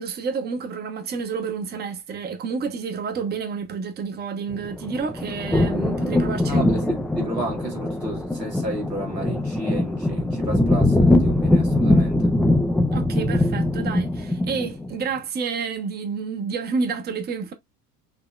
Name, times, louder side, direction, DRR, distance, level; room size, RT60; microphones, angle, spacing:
voice 1, 0.0-6.9 12.9-17.5, right 5 dB, 20° right, 0.9 m, -29 dB
sound 1, 4.5-14.9, left 1 dB, ahead, 0.4 m, -22 dB
voice 2, 6.5-12.3, equal, 90° right, 1.8 m, -32 dB
6.1 x 2.9 x 2.2 m
figure-of-eight pair, 70°, 48 cm